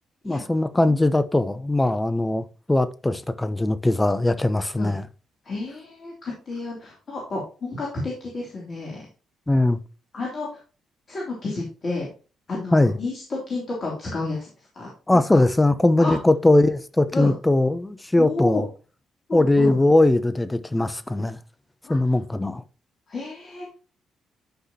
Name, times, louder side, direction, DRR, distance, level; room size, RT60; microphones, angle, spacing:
voice 1, 0.2-5.0 9.5-9.8 12.7-13.0 15.1-18.6 19.3-21.4 21.9-22.6, left 2 dB, 15° left, 0.8 m, -20 dB
voice 2, 5.4-9.1 10.1-10.6 11.1-12.1 12.5-15.4 16.0-16.2 17.1-17.4 18.2-18.6 19.3-19.8 21.8-22.0 23.1-23.7, left 2 dB, 45° left, 3.0 m, -31 dB
11.5 x 5.6 x 2.9 m
hypercardioid pair, 45°, 0 cm